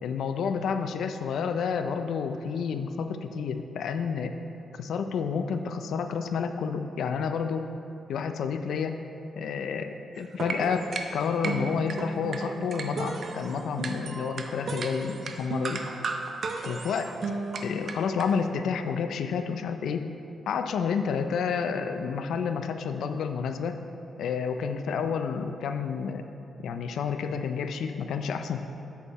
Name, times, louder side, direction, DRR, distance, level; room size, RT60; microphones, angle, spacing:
voice 1, 0.0-4.4 4.7-7.7 8.1-9.0 9.4-15.8 16.6-17.1 17.6-20.1 20.5-23.8 24.2-26.2 26.6-28.6, left 6 dB, 75° left, 8 dB, 0.5 m, -30 dB
sound 1, 10.2-18.3, right 3 dB, 45° right, 0.5 m, -34 dB
8.2 x 6.6 x 4.1 m, 2.9 s
wide cardioid pair, 160°, 0 cm